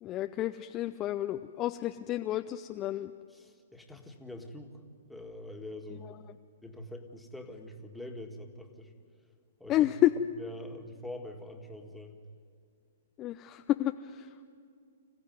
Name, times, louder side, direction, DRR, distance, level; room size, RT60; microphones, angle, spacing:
voice 1, 0.0-3.1 6.0-6.2 9.7-10.1 13.2-14.3, left 14 dB, 25° left, 8 dB, 0.5 m, -30 dB
voice 2, 3.3-4.8 5.1-6.2 6.6-8.9 9.6-9.9 10.4-12.2, left 1 dB, ahead, 2 dB, 2.0 m, -44 dB
26.0 x 15.0 x 9.5 m, 2.3 s
hypercardioid pair, 140°, 0 cm